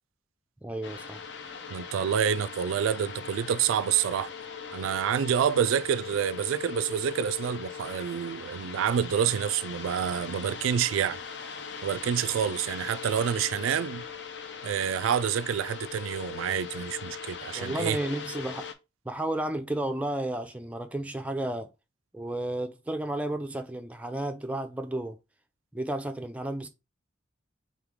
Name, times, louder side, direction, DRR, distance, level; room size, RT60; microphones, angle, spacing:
voice 1, 0.6-1.2 17.5-18.7 19.1-21.7 22.1-25.2 25.7-26.7, right 1 dB, 5° right, 0.4 m, -32 dB
sound 1, 0.8-18.7, left 6 dB, 60° left, 0.6 m, -40 dB
voice 2, 1.7-4.3 4.7-11.2 11.8-14.0 14.6-18.0, right 8 dB, 90° right, 0.3 m, -28 dB
3.7 x 3.2 x 3.6 m
head